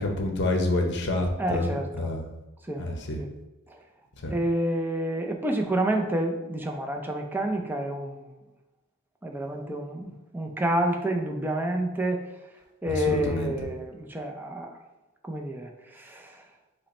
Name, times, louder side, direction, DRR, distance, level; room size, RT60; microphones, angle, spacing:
voice 1, 0.0-1.7 2.0-2.2 2.8-3.2 4.2-4.3 12.9-13.5, left 2 dB, 55° left, 2 dB, 0.7 m, -28 dB
voice 2, 1.4-2.1 2.7-2.9 3.2-3.3 3.7-3.8 4.3-8.3 9.2-12.3 12.8-14.8 15.2-16.4, right 1 dB, 10° right, 2 dB, 0.4 m, -29 dB
5.4 x 2.2 x 4.1 m, 1.0 s
head